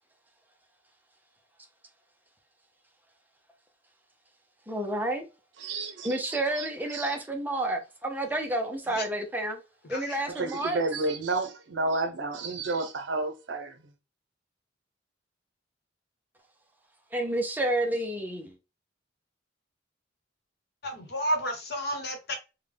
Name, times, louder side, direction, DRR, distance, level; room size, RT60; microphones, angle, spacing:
voice 1, 4.7-5.3 6.0-9.6 9.9-10.8 17.1-18.5, right 1 dB, 10° right, 0.5 m, -30 dB
voice 2, 5.6-6.2 6.5-7.1 10.3-13.8, right 3 dB, 65° right, 0.7 m, -31 dB
voice 3, 20.8-22.3, equal, 55° left, 1.0 m, -31 dB
3.7 x 2.2 x 3.3 m
head